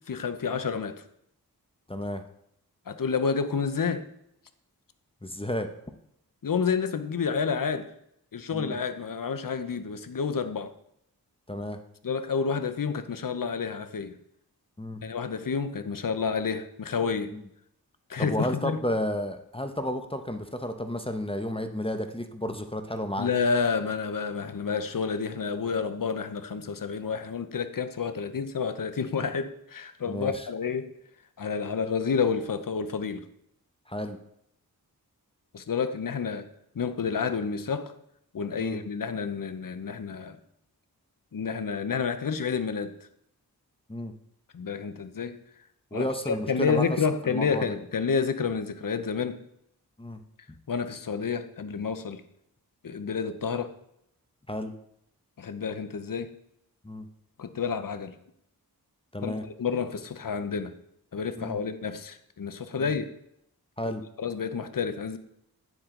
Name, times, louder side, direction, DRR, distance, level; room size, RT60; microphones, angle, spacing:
voice 1, 0.1-1.0 2.9-4.1 6.4-7.9 8.3-10.7 12.0-14.2 15.0-17.3 18.1-18.8 23.2-30.9 31.4-33.2 35.5-36.5 36.7-37.9 38.3-40.4 41.3-42.9 44.5-45.4 45.9-49.4 50.7-52.2 52.8-53.8 55.4-56.3 57.4-58.2 59.2-60.7 61.1-63.1 64.2-65.2, left 5 dB, 60° left, 0.9 m, -29 dB
voice 2, 1.9-2.2 5.2-5.7 8.5-8.7 11.5-11.8 14.8-15.0 17.3-17.5 18.2-23.3 30.1-30.5 33.9-34.2 38.6-38.8 43.9-44.1 45.9-46.8 47.3-47.7 50.0-50.2 54.5-54.7 56.8-57.1 59.1-59.4 61.4-61.6 62.8-62.9 63.8-64.0, left 1 dB, 15° left, 0.9 m, -32 dB
9.5 x 7.5 x 3.8 m
wide cardioid pair, 60°, 37 cm